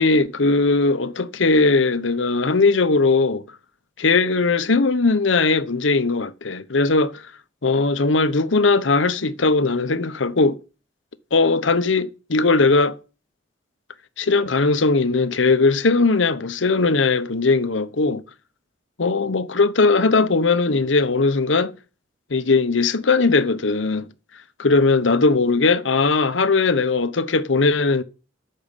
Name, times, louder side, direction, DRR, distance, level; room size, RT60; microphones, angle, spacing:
voice 1, 0.0-3.4 4.0-7.2 7.6-10.6 11.3-13.0 14.2-18.2 19.0-21.7 22.3-24.1 24.6-28.0, left 3 dB, 75° left, 0.9 m, -19 dB
8.9 x 6.6 x 8.3 m
head